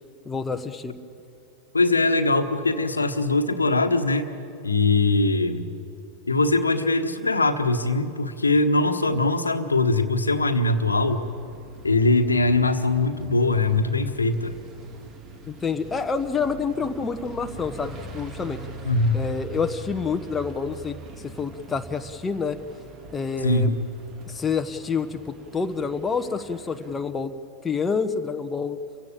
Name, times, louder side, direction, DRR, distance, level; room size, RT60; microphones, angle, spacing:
voice 1, 0.2-0.9 15.5-18.6 19.1-22.6 23.1-23.7 24.3-27.3 27.6-28.8, left 5 dB, 15° left, 7 dB, 1.1 m, -28 dB
voice 2, 1.7-4.3 4.6-5.7 6.3-11.3 11.8-14.5 18.8-19.2 23.4-23.7, left 2 dB, 80° left, 8 dB, 1.4 m, -21 dB
sound 1, 10.7-27.0, right 3 dB, 35° right, 3.4 m, -43 dB
29.0 x 16.5 x 8.7 m, 2.9 s
figure-of-eight pair, 90°, 0 cm